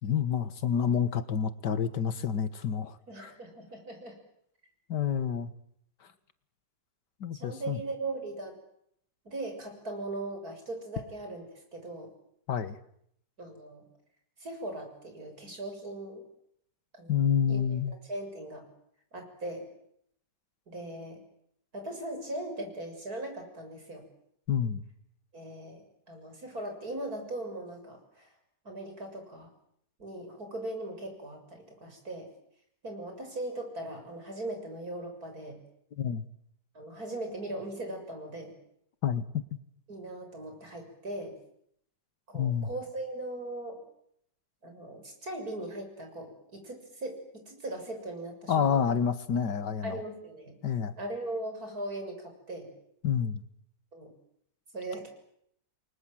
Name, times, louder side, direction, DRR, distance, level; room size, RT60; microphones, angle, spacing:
voice 1, 0.0-3.3 4.9-5.5 7.2-7.8 12.5-12.8 17.1-17.9 24.5-24.8 36.0-36.3 39.0-39.2 42.3-42.7 48.5-50.0 50.6-50.9 53.0-53.4, left 7 dB, 85° left, 13 dB, 2.1 m, -28 dB
voice 2, 3.1-4.2 7.3-8.6 9.2-11.4 11.7-12.1 13.4-13.9 14.4-16.3 17.0-17.2 17.5-17.6 18.1-18.7 19.1-19.7 20.7-21.2 21.7-24.0 25.3-28.3 28.6-29.5 30.0-32.3 32.8-35.6 36.7-38.6 39.9-41.4 42.3-43.8 44.6-48.8 49.8-50.6 51.0-52.7 53.9-54.1 54.7-55.1, right 1 dB, 60° right, 4 dB, 7.4 m, -39 dB
30.0 x 23.5 x 7.7 m, 0.71 s
omnidirectional pair, 1.8 m